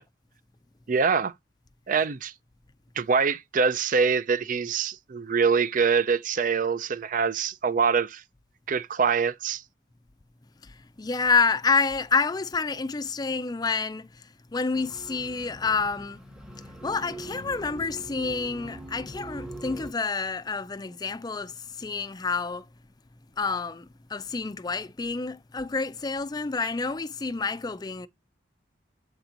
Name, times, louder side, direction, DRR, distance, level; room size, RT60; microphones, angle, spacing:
voice 1, 0.9-1.3 1.9-2.3 3.0-8.2 8.7-9.6, right 5 dB, 45° right, 0.4 m, -24 dB
voice 2, 11.0-14.1 14.5-16.2 16.8-22.6 23.4-23.9 24.1-28.1, left 4 dB, 20° left, 0.4 m, -28 dB
sound 1, 14.7-19.9, right 1 dB, 5° right, 0.9 m, -42 dB
8.0 x 2.9 x 5.0 m
head